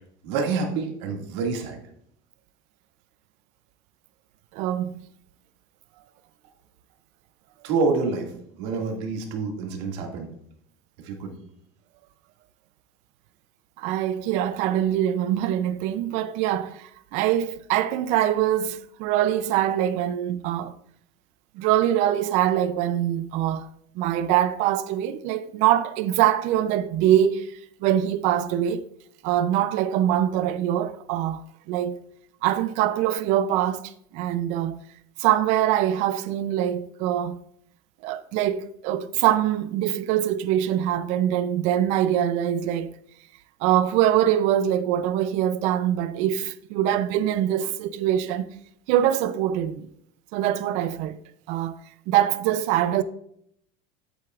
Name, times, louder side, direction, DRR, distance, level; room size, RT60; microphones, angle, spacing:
voice 1, 0.2-1.8 7.6-8.3 8.6-10.3 11.1-11.4, right 4 dB, 80° right, 2.1 m, -27 dB
voice 2, 4.5-4.9 13.8-20.7 21.6-23.7 24.0-27.5 27.8-28.9 29.2-32.0 32.4-34.8 35.2-37.4 38.0-42.9 43.6-48.5 48.9-49.9 50.3-51.2 51.5-51.8 52.1-53.0, right 11 dB, 55° right, 0.5 m, -23 dB
10.5 x 8.1 x 2.4 m
cardioid pair, 160°, 14 cm